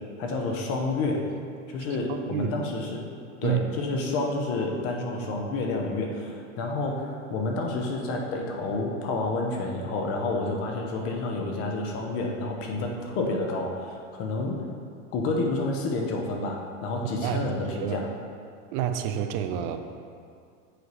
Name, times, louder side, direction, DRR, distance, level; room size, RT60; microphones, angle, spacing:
voice 1, 0.2-1.3 1.7-3.1 3.4-14.6 15.1-18.1, left 2 dB, 35° left, 1 dB, 1.0 m, -29 dB
voice 2, 2.1-2.5 3.4-3.6 17.2-18.0 18.7-19.8, right 10 dB, 40° right, 8 dB, 0.4 m, -29 dB
8.0 x 4.6 x 3.2 m, 2.3 s
supercardioid pair, 135°, 37 cm